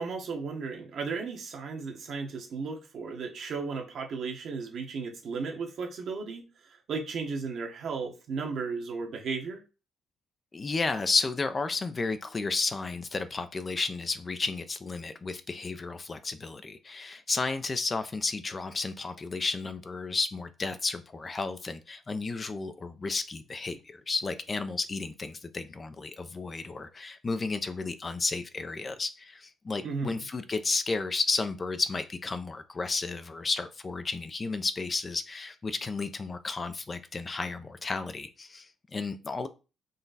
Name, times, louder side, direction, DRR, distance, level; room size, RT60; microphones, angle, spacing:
voice 1, 0.0-9.6 29.8-30.2, right 4 dB, 65° right, 1.1 m, -35 dB
voice 2, 10.5-39.5, left 3 dB, 30° left, 0.4 m, -32 dB
3.9 x 2.3 x 4.0 m
cardioid pair, 90°, 0 cm